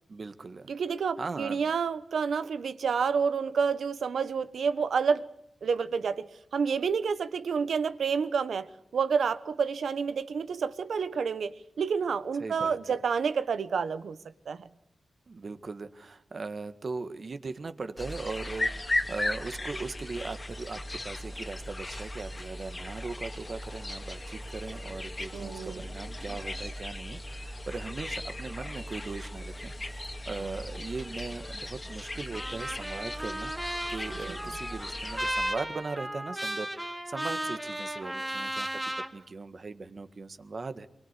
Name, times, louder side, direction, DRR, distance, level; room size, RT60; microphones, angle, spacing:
voice 1, 0.1-0.7 1.2-1.6 12.4-13.0 15.3-29.7 30.2-33.5 33.9-38.7 39.1-40.9, right 3 dB, 50° right, 10 dB, 1.7 m, -39 dB
voice 2, 0.7-5.2 5.6-8.7 8.9-14.2 14.5-14.7 25.3-25.8 34.3-34.4, right 6 dB, 80° right, 12 dB, 1.2 m, -29 dB
sound 1, 18.0-35.5, left 1 dB, 30° left, 2.2 m, -37 dB
Trumpet, 32.3-39.1, right 1 dB, 10° right, 3.2 m, -35 dB
24.5 x 23.0 x 8.3 m, 0.78 s
cardioid pair, 75°, 0 cm